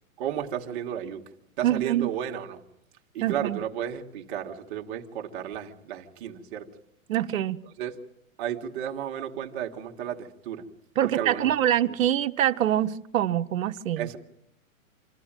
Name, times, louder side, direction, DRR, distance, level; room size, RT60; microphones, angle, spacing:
voice 1, 0.2-1.2 1.6-2.6 3.1-6.7 7.8-8.0 8.4-10.7 11.0-11.5 11.8-11.9 14.0-14.2, right 9 dB, 40° right, 1.8 m, -33 dB
voice 2, 1.6-2.1 3.2-3.6 7.1-7.6 11.0-14.1, right 11 dB, 70° right, 1.0 m, -25 dB
26.5 x 13.5 x 9.0 m
hypercardioid pair, 155°, 41 cm